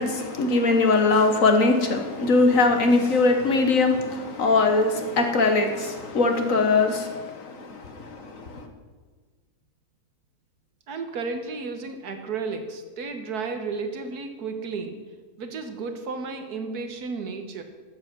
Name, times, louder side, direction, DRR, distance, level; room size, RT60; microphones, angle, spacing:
voice 1, 0.0-8.6, left 3 dB, 60° left, 1.6 m, -21 dB
voice 2, 10.9-15.0 15.4-17.6, right 4 dB, 75° right, 1.8 m, -33 dB
13.5 x 8.0 x 6.1 m
omnidirectional pair, 1.6 m